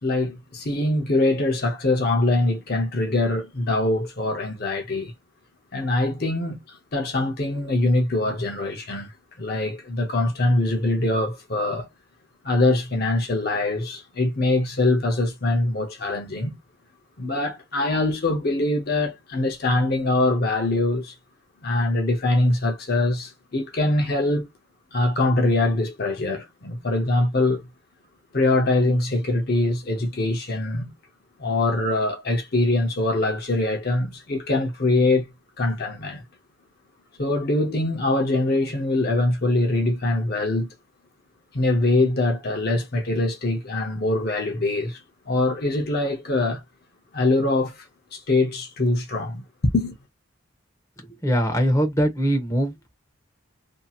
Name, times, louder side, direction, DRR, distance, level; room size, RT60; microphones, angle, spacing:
voice 1, 0.0-5.1 5.7-9.1 9.4-11.9 12.4-16.6 17.2-21.1 21.6-24.5 24.9-27.7 28.3-30.9 31.4-35.3 35.6-36.2 37.2-40.7 41.5-46.6 47.1-47.9 48.1-49.4 49.7-49.9, left 2 dB, 50° left, 0.7 m, -23 dB
voice 2, 51.2-52.9, equal, 15° left, 0.8 m, -22 dB
2.8 x 2.7 x 2.3 m
head